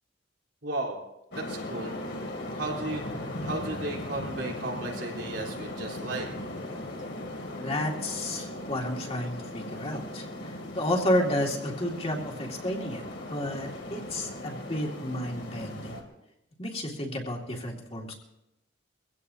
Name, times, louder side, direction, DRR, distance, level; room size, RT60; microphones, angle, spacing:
voice 1, 0.6-1.0 1.3-1.9 2.6-3.0 3.4-6.3 15.9-16.0, right 2 dB, 85° right, -1 dB, 3.8 m, -34 dB
sound 1, 1.3-16.0, left 1 dB, 70° left, 2.8 m, -38 dB
voice 2, 7.5-13.0 13.3-16.0 16.6-18.1, left 1 dB, 35° left, 0 dB, 2.3 m, -31 dB
23.5 x 16.0 x 2.8 m, 0.88 s
head